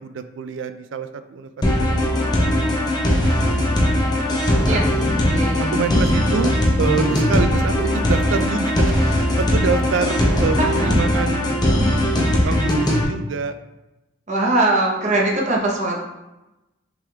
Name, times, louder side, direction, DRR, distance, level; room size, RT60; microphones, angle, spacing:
voice 1, 0.0-1.5 1.9-3.1 3.5-4.4 4.7-4.8 5.7-11.5 12.2-13.6, right 5 dB, 75° right, 10 dB, 0.3 m, -27 dB
sound 1, 1.6-13.0, left 1 dB, 20° left, 0.6 m, -19 dB
voice 2, 5.3-5.8 10.8-11.0 12.4-12.5 14.3-16.0, right 2 dB, 35° right, -2 dB, 0.8 m, -21 dB
5.9 x 3.5 x 2.3 m, 0.99 s
head